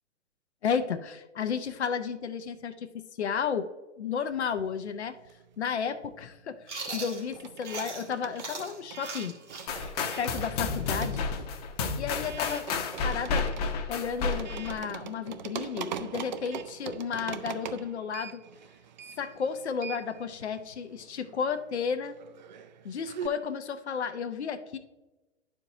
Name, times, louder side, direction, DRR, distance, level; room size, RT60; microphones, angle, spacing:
voice 1, 0.6-3.7 4.0-5.2 5.6-6.3 6.9-9.4 10.2-11.3 12.0-12.7 13.0-13.5 13.9-18.4 19.2-22.2 22.8-24.8, left 6 dB, 70° left, 8 dB, 0.6 m, -32 dB
sound 1, 4.5-5.7 6.0-23.3, right 8 dB, 40° right, 0.4 m, -43 dB
Chewing mastication, 6.7-8.1 8.4-12.0, right 3 dB, 75° right, 2.0 m, -40 dB
sound 2, 9.7-14.8, left 4 dB, 35° left, 0.8 m, -31 dB
11.5 x 4.6 x 2.7 m, 1.1 s
figure-of-eight pair, 115°, 35 cm